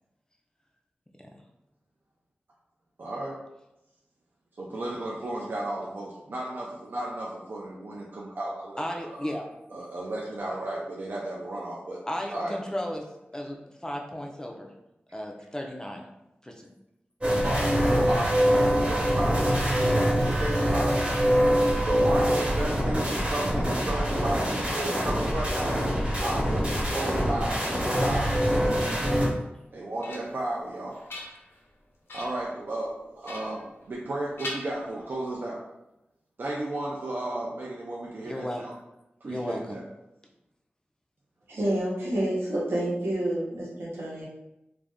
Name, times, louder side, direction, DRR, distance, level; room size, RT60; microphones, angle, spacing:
voice 1, 3.0-3.4 4.6-9.4 9.7-12.0 12.3-12.5 17.4-21.0 21.8-28.3 29.7-31.0 32.1-33.6 33.9-35.6 36.4-38.7 39.2-39.8, right 1 dB, 55° right, -4 dB, 0.4 m, -34 dB
voice 2, 8.8-9.4 12.1-13.1 13.3-14.7 15.1-16.0 16.4-16.7 19.8-20.3 28.6-29.3 38.2-38.6 39.3-39.8, left 1 dB, 15° left, 1 dB, 0.4 m, -35 dB
sound 1, 17.2-29.3, equal, 30° right, 0.9 m, -24 dB
sound 2, 29.5-30.5 30.9-31.7 32.1-32.5 33.2-34.1 34.4-35.3, left 1 dB, 75° left, 0.6 m, -41 dB
voice 3, 41.5-44.3, right 1 dB, 85° right, -5 dB, 0.9 m, -28 dB
2.5 x 2.1 x 3.4 m, 0.90 s
wide cardioid pair, 100°, 4 cm